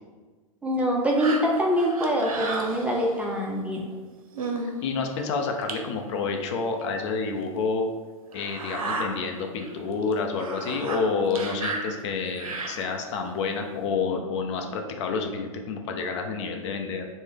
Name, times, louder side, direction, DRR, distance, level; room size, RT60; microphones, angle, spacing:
voice 1, 0.6-3.9, equal, 5° right, -2 dB, 0.4 m, -24 dB
sound 1, 1.2-3.3 3.9-4.0 4.3-4.7 5.2-5.3 5.7-5.8 6.8-6.9 7.4-7.5 8.3-9.1 9.6-9.7 10.0-13.1 13.7-13.8, right 3 dB, 85° right, 0.5 m, -33 dB
voice 2, 4.8-7.9 8.3-17.0, left 4 dB, 55° left, 4 dB, 0.5 m, -29 dB
3.2 x 2.0 x 3.6 m, 1.3 s
hypercardioid pair, 110°, 18 cm